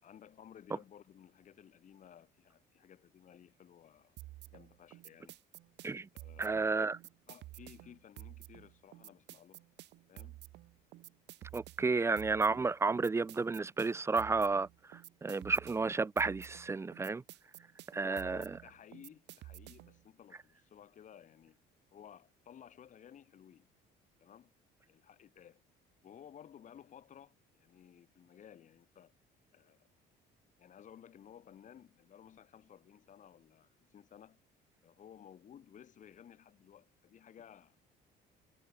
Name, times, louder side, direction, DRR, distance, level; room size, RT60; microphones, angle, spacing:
voice 1, 0.0-4.2 4.5-5.4 6.1-6.7 7.3-9.6 10.1-10.4 17.9-21.6 21.9-23.7 24.2-24.5 24.9-25.6 26.0-29.1 29.5-29.9 30.6-34.4 34.8-37.7, left 9 dB, 45° left, 4.9 m, -57 dB
sound 1, 4.2-20.0, right 17 dB, 75° right, 7.0 m, -52 dB
voice 2, 6.4-7.0 11.5-14.7 15.2-17.2 17.9-18.4, right 4 dB, 15° right, 0.5 m, -31 dB
cardioid pair, 125°, 18 cm